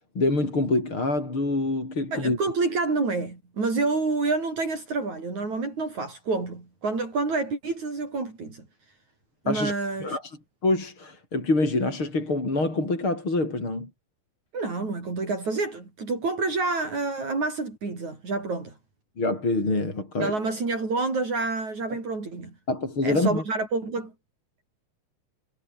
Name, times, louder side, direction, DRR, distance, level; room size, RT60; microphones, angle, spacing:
voice 1, 0.1-2.4 9.5-9.7 10.0-10.3 10.6-13.9 19.2-20.3 22.7-23.4, left 2 dB, 40° left, 8.1 m, -25 dB
voice 2, 2.1-8.6 9.4-10.2 14.5-18.8 20.2-22.5 23.0-24.1, right 3 dB, 60° right, 7.9 m, -28 dB
omnidirectional pair, 3.7 m